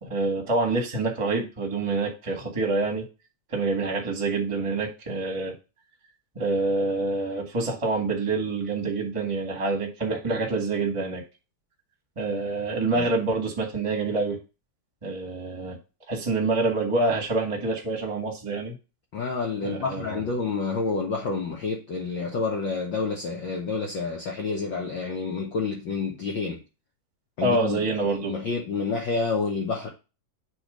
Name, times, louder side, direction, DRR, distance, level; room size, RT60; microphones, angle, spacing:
voice 1, 0.0-3.0 3.5-5.5 6.3-11.2 12.1-14.4 15.0-15.8 16.1-18.7 19.6-20.2 27.4-28.3, right 3 dB, 15° right, 1.0 m, -26 dB
voice 2, 19.1-26.6 27.4-27.8 28.1-29.9, left 4 dB, 85° left, 1.0 m, -29 dB
8.7 x 3.2 x 5.1 m
omnidirectional pair, 3.8 m